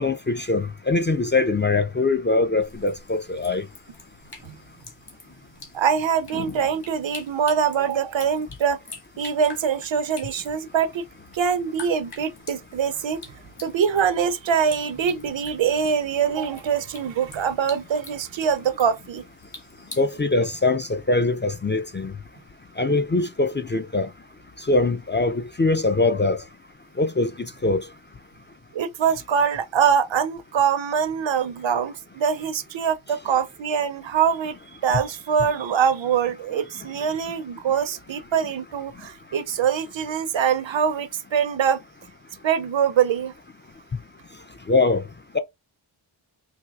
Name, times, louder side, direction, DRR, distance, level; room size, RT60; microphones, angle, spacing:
voice 1, 0.0-3.6 20.0-22.1 22.8-24.1 24.7-26.4 27.0-27.3 27.6-27.8 44.7-45.0, left 3 dB, 25° left, 0.3 m, -22 dB
sound 1, 2.6-20.2, left 4 dB, 50° left, 1.4 m, -45 dB
voice 2, 5.7-8.8 9.2-11.0 11.3-13.3 13.6-19.2 28.7-34.5 34.8-41.8 42.4-43.3, right 7 dB, 65° right, 0.6 m, -23 dB
4.4 x 2.7 x 2.3 m
wide cardioid pair, 70°, 48 cm